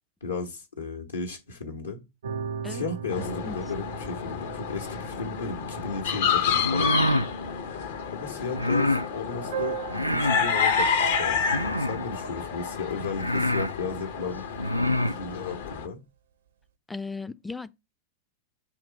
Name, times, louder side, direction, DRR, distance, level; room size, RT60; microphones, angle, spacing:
voice 1, 0.2-2.0 2.7-7.0 8.1-14.5 15.1-16.0, left 4 dB, 75° left, 1.1 m, -35 dB
sound 1, 2.2-8.9 9.4-12.5, right 8 dB, 65° right, 0.6 m, -38 dB
sound 2, 3.1-15.9, left 7 dB, 60° left, 0.7 m, -29 dB
sound 3, 6.5-7.3 8.5-9.1 9.9-10.5 11.5-12.1 12.7-12.8 13.2-13.7 14.5-15.2, left 1 dB, 90° left, 0.4 m, -26 dB
voice 2, 16.9-17.7, left 4 dB, 5° left, 0.4 m, -36 dB
7.1 x 2.9 x 4.9 m
figure-of-eight pair, 90°, 0 cm